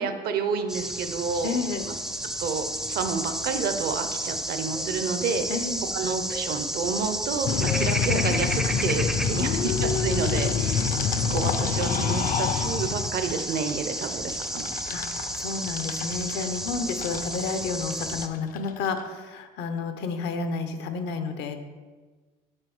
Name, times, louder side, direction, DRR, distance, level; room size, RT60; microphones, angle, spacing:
voice 1, 0.0-1.6 2.4-5.4 5.9-10.9 11.3-14.7, right 5 dB, 65° right, 8 dB, 0.7 m, -30 dB
sound 1, 0.7-18.3, equal, 5° right, 0.4 m, -31 dB
voice 2, 1.4-2.0 5.5-5.8 9.4-10.8 14.9-15.1 15.4-21.6, left 4 dB, 85° left, 8 dB, 0.7 m, -31 dB
sound 2, 7.5-19.0, left 8 dB, 55° left, 0.5 m, -28 dB
6.7 x 3.5 x 6.0 m, 1.4 s
cardioid pair, 110°, 17 cm